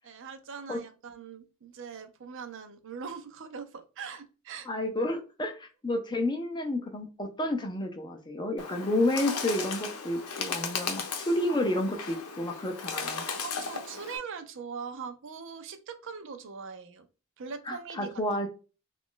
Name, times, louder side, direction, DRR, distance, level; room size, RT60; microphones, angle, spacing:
voice 1, 0.0-4.7 13.4-17.0 17.4-18.1, right 6 dB, 55° right, 8 dB, 0.5 m, -41 dB
voice 2, 4.7-13.2 17.7-18.5, left 1 dB, 20° left, 5 dB, 0.5 m, -30 dB
Bird, 8.6-14.2, left 5 dB, 75° left, 0.7 m, -36 dB
3.0 x 2.4 x 3.7 m, 0.33 s
head